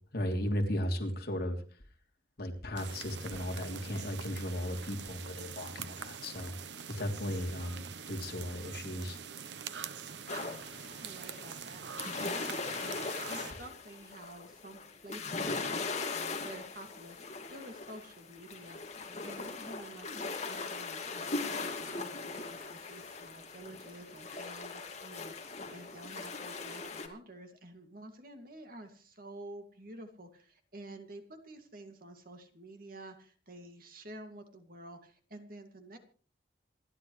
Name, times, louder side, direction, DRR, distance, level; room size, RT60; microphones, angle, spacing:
voice 1, 0.1-1.8 2.4-6.5 6.9-9.2, equal, 55° left, 1 dB, 3.3 m, -36 dB
sound 1, 2.8-13.5, right 7 dB, 70° right, 0.9 m, -44 dB
sound 2, 10.3-27.1, left 3 dB, 35° left, 2.3 m, -40 dB
voice 2, 11.0-36.0, right 1 dB, 50° right, 5 dB, 2.4 m, -50 dB
27.5 x 11.5 x 3.3 m, 0.41 s
head